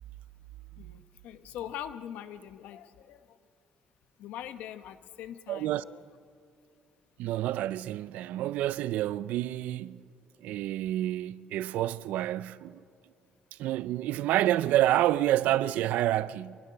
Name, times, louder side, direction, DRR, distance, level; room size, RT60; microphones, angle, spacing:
voice 1, 0.8-3.4 4.2-6.0, left 10 dB, 85° left, 1.1 m, -42 dB
voice 2, 5.5-5.8 7.2-10.0 10.4-12.8 13.6-16.6, right 14 dB, 80° right, 0.5 m, -28 dB
25.0 x 20.5 x 6.8 m
cardioid pair, 165°, 3 cm